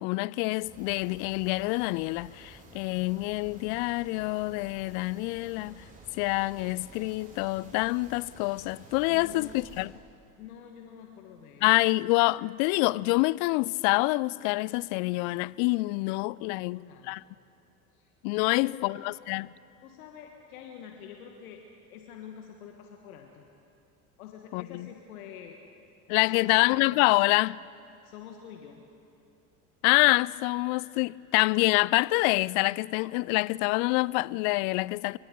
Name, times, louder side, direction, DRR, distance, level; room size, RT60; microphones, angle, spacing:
voice 1, 0.0-5.8 6.2-9.9 11.6-17.2 18.2-19.5 24.5-24.9 26.1-27.6 29.8-35.2, left 23 dB, 55° left, 0.5 m, -26 dB
sound 1, 0.6-9.8, right 1 dB, 20° right, 6.4 m, -52 dB
voice 2, 9.1-9.7 10.4-11.7 16.4-17.2 17.9-18.1 18.4-19.0 19.8-21.6 21.9-23.5 24.2-25.6 26.2-26.8 28.0-28.8, left 9 dB, 70° left, 1.7 m, -46 dB
29.0 x 24.0 x 3.9 m
hypercardioid pair, 75°, 44 cm